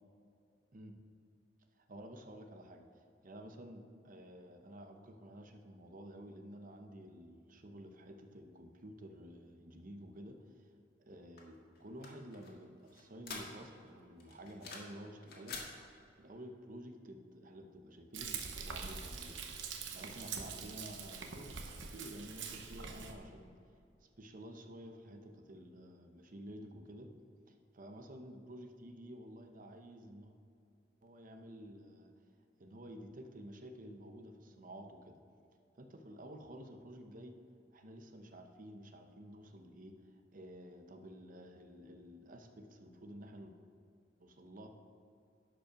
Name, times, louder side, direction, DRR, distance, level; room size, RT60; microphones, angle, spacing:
voice 1, 1.8-10.7 11.0-15.6 16.2-23.6 24.0-27.1 27.7-30.4 31.0-32.1 32.6-35.2 35.8-37.3 37.7-43.6 44.2-44.7, equal, 50° right, 5 dB, 0.8 m, -51 dB
sound 1, 11.4-13.9 14.2-15.0 15.2-15.7, left 4 dB, 60° left, 1.7 m, -47 dB
Frying (food), 18.1-23.1, right 6 dB, 85° right, 0.9 m, -44 dB
11.5 x 5.3 x 5.1 m, 2.5 s
head